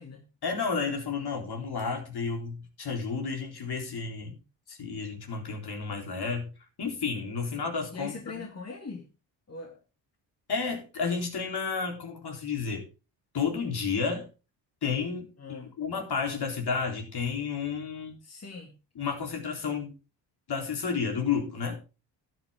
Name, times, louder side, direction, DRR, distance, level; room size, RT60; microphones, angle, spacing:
voice 1, 0.4-4.4 4.7-6.5 6.8-8.4 10.5-12.8 13.3-14.3 14.8-18.2 19.0-19.9 20.5-21.8, left 5 dB, 55° left, 3.9 m, -31 dB
voice 2, 7.5-9.1 9.5-9.8 15.4-15.7 18.2-18.7, left 4 dB, 30° left, 2.6 m, -42 dB
12.0 x 9.0 x 3.7 m
supercardioid pair, 60°, 47 cm